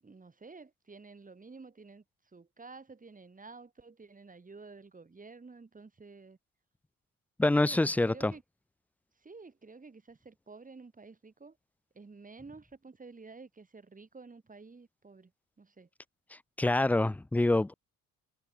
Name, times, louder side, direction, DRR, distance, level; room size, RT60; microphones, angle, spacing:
voice 1, 0.0-2.0 2.3-6.4 7.4-8.4 9.2-11.6 11.9-15.3 15.6-15.9, right 4 dB, 25° right, 7.0 m, -51 dB
voice 2, 7.4-8.3 16.6-17.7, left 2 dB, 5° left, 0.3 m, -26 dB
cardioid pair, 90°, 30 cm